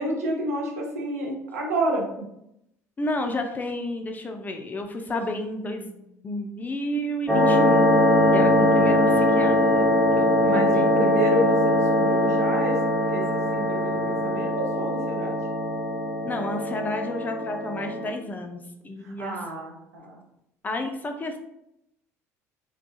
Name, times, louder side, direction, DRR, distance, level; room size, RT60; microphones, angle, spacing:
voice 1, 0.0-2.3 9.0-9.1 10.4-12.8 13.0-13.2 13.5-15.4 19.0-20.2, right 1 dB, 75° right, -1 dB, 0.6 m, -30 dB
voice 2, 3.0-7.9 8.3-10.9 16.2-19.4 20.6-21.4, left 1 dB, 20° left, 4 dB, 0.3 m, -31 dB
sound 1, 7.3-18.1, left 1 dB, ahead, 0.8 m, -21 dB
2.4 x 2.3 x 2.6 m, 0.81 s
figure-of-eight pair, 60°, 8 cm